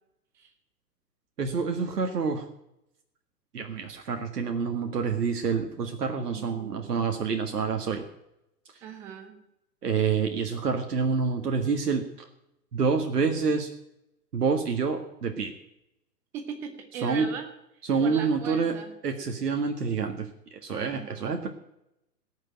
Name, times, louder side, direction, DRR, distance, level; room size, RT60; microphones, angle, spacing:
voice 1, 1.4-2.5 3.5-8.0 9.8-12.3 12.7-13.7 14.3-15.5 17.0-17.3 17.9-18.7 19.0-20.3 20.6-21.5, right 5 dB, 65° right, 4 dB, 1.8 m, -27 dB
voice 2, 6.3-7.0 8.8-9.4 16.3-17.5 18.0-18.9 20.7-21.4, right 7 dB, 5° right, 6 dB, 0.4 m, -39 dB
17.5 x 6.7 x 8.8 m, 0.83 s
figure-of-eight pair, 115°, 49 cm